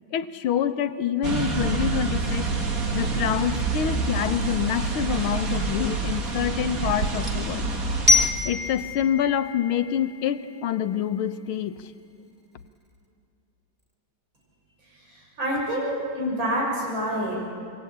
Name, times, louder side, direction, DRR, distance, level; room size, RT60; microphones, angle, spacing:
voice 1, 0.1-2.5 2.9-7.7 8.5-11.9, left 9 dB, 90° left, 11 dB, 1.9 m, -26 dB
sound 1, 1.2-8.3, right 4 dB, 45° right, 2.5 m, -27 dB
Glockenspiel, 8.1-10.9, left 3 dB, 5° right, 2.4 m, -25 dB
voice 2, 15.4-17.4, equal, 70° right, -3 dB, 7.3 m, -27 dB
27.0 x 24.0 x 8.8 m, 2.7 s
omnidirectional pair, 2.3 m